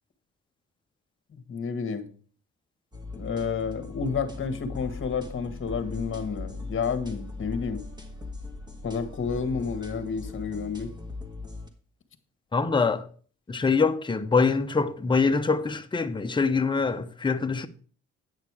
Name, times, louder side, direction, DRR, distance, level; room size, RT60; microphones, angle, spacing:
voice 1, 1.3-2.1 3.1-7.8 8.8-10.9, left 5 dB, 40° left, 1.5 m, -30 dB
sound 1, 2.9-11.7, left 3 dB, 15° right, 1.9 m, -39 dB
voice 2, 12.5-13.1 13.5-17.7, left 4 dB, 15° left, 0.7 m, -24 dB
9.6 x 6.6 x 4.8 m
cardioid pair, 90°, 30 cm